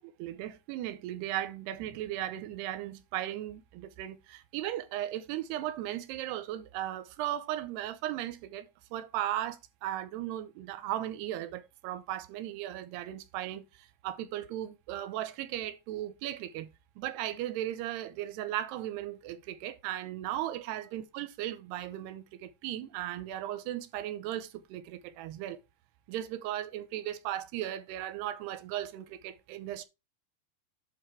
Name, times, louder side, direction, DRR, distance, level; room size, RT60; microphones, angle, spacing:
voice 1, 0.2-16.7 17.0-25.6 26.1-29.8, right 13 dB, 85° right, 2.8 m, -37 dB
11.0 x 4.7 x 3.3 m
omnidirectional pair, 4.7 m